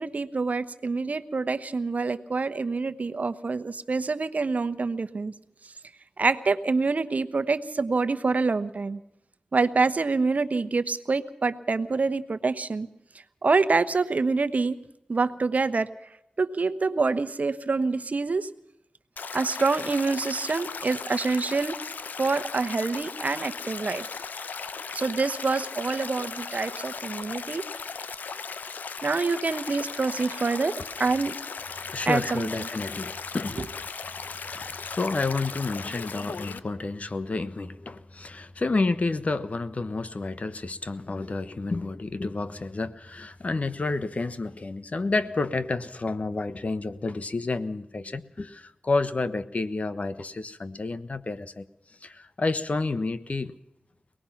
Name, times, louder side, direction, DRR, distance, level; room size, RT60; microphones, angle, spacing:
voice 1, 0.0-5.3 6.2-9.0 9.5-12.9 13.4-14.8 15.1-15.9 16.4-18.5 19.3-21.8 22.2-24.0 24.9-27.7 29.0-31.4 32.1-32.5, right 4 dB, 60° right, 12 dB, 1.0 m, -26 dB
Stream, 19.2-36.6, left 5 dB, 85° left, 0.8 m, -37 dB
voice 2, 31.9-33.7 34.5-51.7 52.0-53.5, left 3 dB, 55° left, 13 dB, 1.2 m, -30 dB
24.0 x 19.0 x 5.8 m, 0.83 s
cardioid pair, 40°, 3 cm